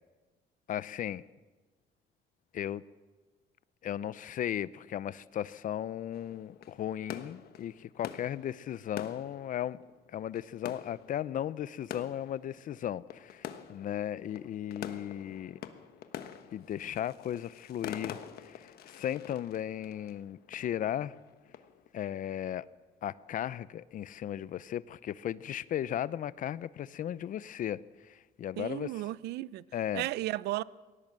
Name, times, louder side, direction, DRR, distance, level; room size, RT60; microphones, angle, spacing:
voice 1, 0.7-1.2 2.5-2.8 3.8-9.8 10.1-15.6 16.5-21.2 21.9-22.7 23.0-28.9 29.7-30.1, left 11 dB, 50° left, 0.6 m, -36 dB
sound 1, 6.1-21.9, left 10 dB, 65° left, 1.3 m, -46 dB
voice 2, 28.6-29.6 29.9-30.6, right 17 dB, 80° right, 0.6 m, -34 dB
20.0 x 17.5 x 7.6 m
cardioid pair, 110°, 17 cm